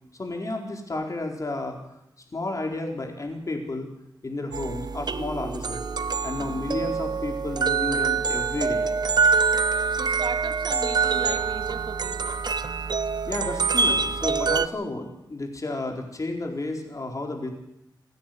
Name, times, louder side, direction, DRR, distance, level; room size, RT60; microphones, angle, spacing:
voice 1, 0.2-1.8 2.3-3.9 4.2-5.8 6.2-8.9 13.2-17.5, left 2 dB, 45° left, 2 dB, 4.4 m, -32 dB
sound 1, 4.5-14.7, right 5 dB, 65° right, 0.8 m, -25 dB
voice 2, 9.9-12.4, right 5 dB, 80° right, 7 dB, 2.0 m, -37 dB
27.5 x 10.5 x 9.4 m, 0.81 s
wide cardioid pair, 85°, 8 cm